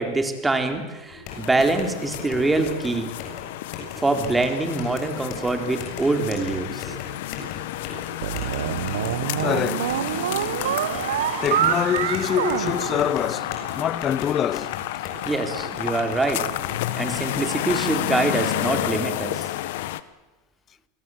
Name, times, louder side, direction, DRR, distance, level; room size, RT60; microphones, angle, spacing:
voice 1, 0.0-3.2 4.0-6.9 10.2-10.3 15.3-16.5 17.0-19.5, right 2 dB, 10° right, 3.9 m, -24 dB
sound 1, 1.1-17.8, left 4 dB, 55° left, 7.4 m, -40 dB
sound 2, 1.3-20.0, left 15 dB, 75° left, 1.2 m, -31 dB
sound 3, 8.2-13.7, right 12 dB, 85° right, 1.1 m, -26 dB
voice 2, 9.4-10.0 11.4-14.7, left 9 dB, 35° left, 0.9 m, -25 dB
28.5 x 20.0 x 7.8 m
supercardioid pair, 115°, 0 cm